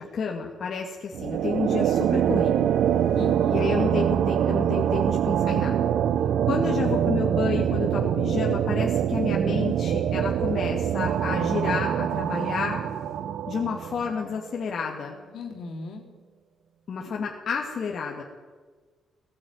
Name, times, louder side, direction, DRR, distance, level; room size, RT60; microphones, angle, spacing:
voice 1, 0.0-2.7 3.5-5.9 6.4-12.8 13.5-15.1 16.9-18.2, left 5 dB, 55° left, -1 dB, 2.3 m, -30 dB
sound 1, 1.1-14.3, right 9 dB, 75° right, 0.9 m, -24 dB
voice 2, 3.1-3.8 15.3-16.1, left 3 dB, 75° left, 2 dB, 3.9 m, -37 dB
18.0 x 15.5 x 9.6 m, 1.5 s
cardioid pair, 90°, 0 cm